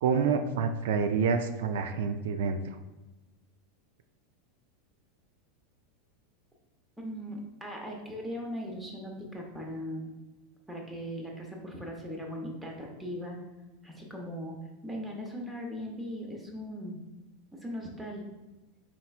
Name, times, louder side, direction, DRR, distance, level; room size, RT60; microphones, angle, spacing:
voice 1, 0.0-2.6, right 5 dB, 80° right, 8 dB, 0.3 m, -27 dB
voice 2, 7.0-10.1 10.7-13.4 13.8-14.6 14.8-17.0 17.6-18.2, equal, 10° right, 0 dB, 0.8 m, -39 dB
4.3 x 4.3 x 2.4 m, 1.1 s
supercardioid pair, 145°, 0 cm